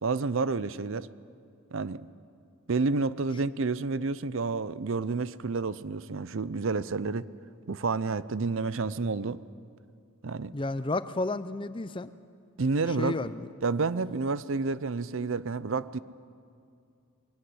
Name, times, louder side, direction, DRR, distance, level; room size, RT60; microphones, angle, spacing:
voice 1, 0.0-1.1 1.7-2.0 2.7-7.3 7.7-9.4 10.2-10.5 12.6-13.3 13.6-16.0, right 4 dB, 60° right, 17 dB, 0.6 m, -29 dB
voice 2, 10.5-12.1 13.0-13.5, left 2 dB, 25° left, 14 dB, 0.5 m, -31 dB
21.5 x 18.0 x 9.6 m, 2.4 s
head